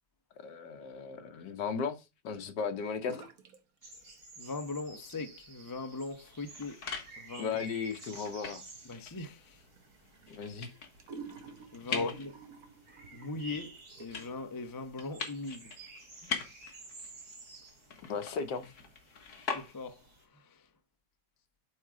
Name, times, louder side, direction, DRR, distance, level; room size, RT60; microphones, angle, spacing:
voice 1, 0.4-3.2 7.4-8.6 10.3-10.7 11.8-12.1 18.1-18.7, left 5 dB, 80° left, 1.6 m, -35 dB
sound 1, 3.0-3.6 3.9-4.5 4.9-14.4, right 5 dB, 60° right, 1.5 m, -53 dB
sound 2, 3.8-20.2, right 2 dB, 90° right, 3.5 m, -53 dB
voice 2, 4.4-6.8 7.2-7.6 8.8-9.6 11.7-12.3 13.1-15.7 17.0-17.1 19.5-20.0 20.3-20.7, left 3 dB, 30° left, 0.3 m, -40 dB
sound 3, 6.2-20.1, left 5 dB, 65° left, 2.0 m, -44 dB
8.3 x 3.7 x 4.6 m
omnidirectional pair, 1.8 m